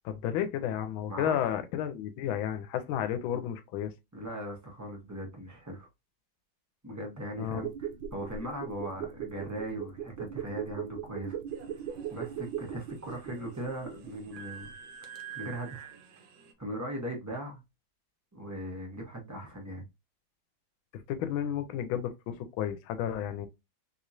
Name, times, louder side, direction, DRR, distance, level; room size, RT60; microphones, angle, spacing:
voice 1, 0.0-3.9 7.4-7.7 20.9-23.5, left 10 dB, 85° left, 1.4 m, -32 dB
voice 2, 1.1-1.5 4.1-5.9 6.8-7.7 8.1-11.4 12.1-14.7 15.1-15.9 16.6-17.6 18.3-19.8, right 1 dB, 15° right, 0.6 m, -39 dB
sound 1, 7.4-14.3 14.6-14.7, right 9 dB, 85° right, 1.4 m, -39 dB
sound 2, 11.5-16.5, right 7 dB, 65° right, 1.1 m, -48 dB
3.4 x 3.0 x 2.6 m
omnidirectional pair, 2.1 m